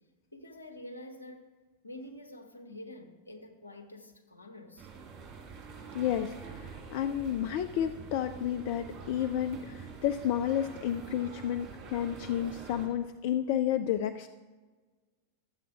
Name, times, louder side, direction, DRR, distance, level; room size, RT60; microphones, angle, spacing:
voice 1, 0.3-1.5 1.8-4.9, left 1 dB, 80° left, 3 dB, 1.2 m, -47 dB
sound 1, 4.8-12.9, right 5 dB, 35° right, 3.1 m, -46 dB
voice 2, 5.9-14.3, left 10 dB, 50° left, 10 dB, 0.4 m, -31 dB
12.0 x 7.9 x 5.0 m, 1.3 s
figure-of-eight pair, 90°, 0 cm